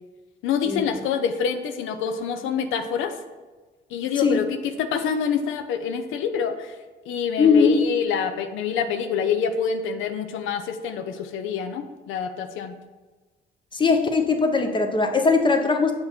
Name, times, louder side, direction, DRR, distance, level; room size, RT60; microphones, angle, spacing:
voice 1, 0.4-3.2 3.9-4.4 4.8-6.8 7.1-12.7, left 7 dB, 90° left, 7 dB, 0.5 m, -26 dB
voice 2, 7.4-7.8 13.7-15.9, left 4 dB, 25° left, 4 dB, 0.8 m, -20 dB
6.5 x 2.9 x 5.7 m, 1.3 s
cardioid pair, 90°, 20 cm